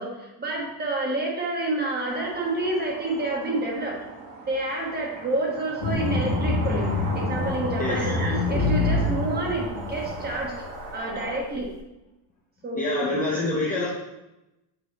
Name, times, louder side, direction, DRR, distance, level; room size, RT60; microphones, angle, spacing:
voice 1, 0.0-4.0 4.5-6.9 7.1-10.5 10.9-11.7 12.6-13.3, right 2 dB, 20° right, -1 dB, 1.2 m, -29 dB
sound 1, 2.1-11.4, right 2 dB, 55° right, 1.5 m, -38 dB
sound 2, 5.8-10.4, left 2 dB, 70° left, 1.8 m, -26 dB
voice 2, 12.7-13.9, left 2 dB, 15° left, -4 dB, 0.6 m, -26 dB
7.7 x 3.9 x 4.1 m, 0.97 s
cardioid pair, 165°, 50 cm